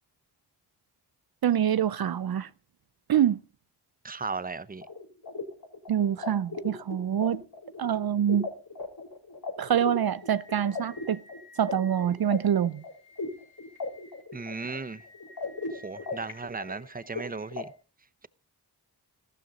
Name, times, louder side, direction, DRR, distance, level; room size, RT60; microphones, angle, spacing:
voice 1, 1.4-2.5 3.1-3.4 5.9-7.4 7.8-8.5 9.6-11.2 11.6-12.8, right 9 dB, 60° right, 0.5 m, -25 dB
voice 2, 4.0-4.9 14.3-15.0 15.7-17.7, right 4 dB, 20° right, 0.7 m, -36 dB
sound 1, 4.8-17.6, left 3 dB, 60° left, 4.1 m, -39 dB
14.0 x 12.5 x 4.0 m
cardioid pair, 45°, 41 cm